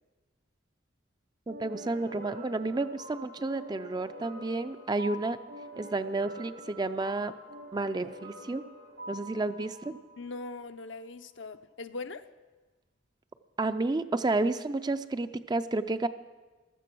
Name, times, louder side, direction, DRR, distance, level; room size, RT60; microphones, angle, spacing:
voice 1, 1.5-5.4 5.8-7.3 7.7-8.7 9.1-10.0 13.6-16.1, right 2 dB, 20° right, 11 dB, 0.4 m, -31 dB
sound 1, 1.5-10.7, equal, 85° right, 3.2 m, -46 dB
voice 2, 10.2-12.2, left 3 dB, 70° left, 9 dB, 0.7 m, -40 dB
15.0 x 13.0 x 6.1 m, 1.2 s
head